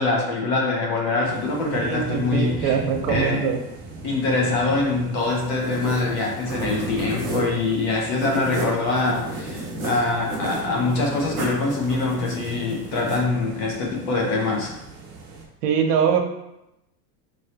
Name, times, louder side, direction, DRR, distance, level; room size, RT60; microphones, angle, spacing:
voice 1, 0.0-2.8 3.1-3.4 4.0-14.7, left 3 dB, 30° left, -1 dB, 0.6 m, -24 dB
sound 1, 1.2-15.4, right 3 dB, 40° right, 1.0 m, -39 dB
voice 2, 1.7-3.6 15.6-16.2, right 7 dB, 80° right, 4 dB, 0.8 m, -22 dB
sound 2, 5.2-13.2, right 1 dB, 20° right, 0.4 m, -33 dB
4.0 x 3.2 x 2.8 m, 0.88 s
supercardioid pair, 175°, 47 cm